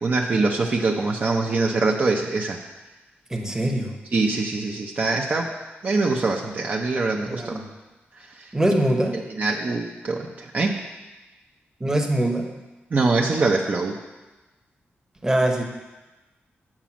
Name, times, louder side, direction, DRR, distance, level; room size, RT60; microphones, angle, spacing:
voice 1, 0.0-2.6 4.1-5.5 5.8-7.5 8.2-8.5 9.1-10.8 12.9-14.0, right 3 dB, 40° right, 0 dB, 0.7 m, -23 dB
voice 2, 3.3-4.0 7.3-7.7 8.5-9.2 11.8-12.5 15.2-15.6, right 1 dB, 15° right, 2 dB, 1.0 m, -23 dB
7.4 x 5.1 x 7.3 m, 1.1 s
wide cardioid pair, 130°, 4 cm